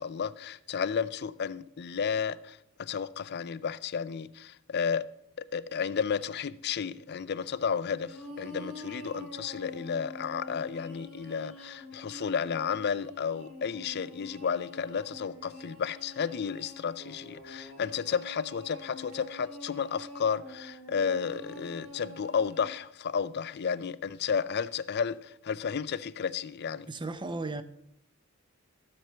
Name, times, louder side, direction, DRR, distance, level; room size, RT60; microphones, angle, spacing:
voice 1, 0.0-5.1 5.4-26.9, left 6 dB, 50° left, 0.5 m, -32 dB
sound 1, 7.9-22.6, left 1 dB, 70° right, 2.8 m, -46 dB
voice 2, 26.9-27.6, right 3 dB, 20° right, 0.6 m, -35 dB
13.5 x 7.7 x 5.6 m
head